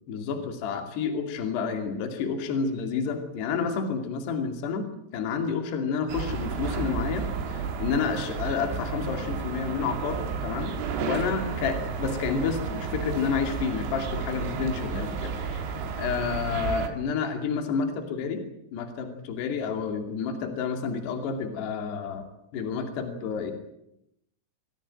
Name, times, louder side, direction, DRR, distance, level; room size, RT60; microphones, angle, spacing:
voice 1, 0.1-4.9 5.1-15.6 16.0-18.4 18.7-23.5, left 5 dB, 60° left, 5 dB, 4.5 m, -30 dB
sound 1, 6.1-16.9, right 5 dB, 75° right, 4.7 m, -32 dB
25.5 x 16.0 x 9.0 m, 0.79 s
omnidirectional pair, 5.6 m